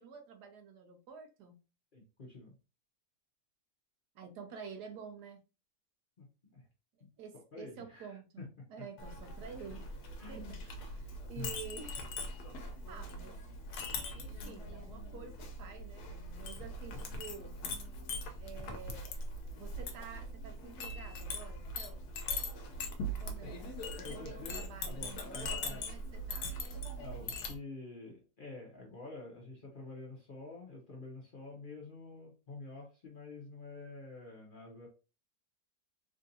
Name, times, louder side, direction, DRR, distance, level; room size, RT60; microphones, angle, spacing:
voice 1, 0.0-1.6 4.1-5.4 7.2-9.9 10.3-12.1 12.5-13.4 14.1-17.6 18.4-19.2 19.5-22.1 23.2-26.5, right 6 dB, 80° right, 1.3 m, -50 dB
voice 2, 1.9-2.5 6.2-6.3 6.5-6.6 7.0-7.1 7.5-8.5 10.2-10.6 11.3-11.5 23.4-23.6 24.0-25.9 27.0-34.9, left 3 dB, 45° left, 0.7 m, -48 dB
Chink clink, 9.0-27.5, left 1 dB, 75° left, 1.2 m, -41 dB
3.6 x 2.6 x 2.6 m
omnidirectional pair, 1.7 m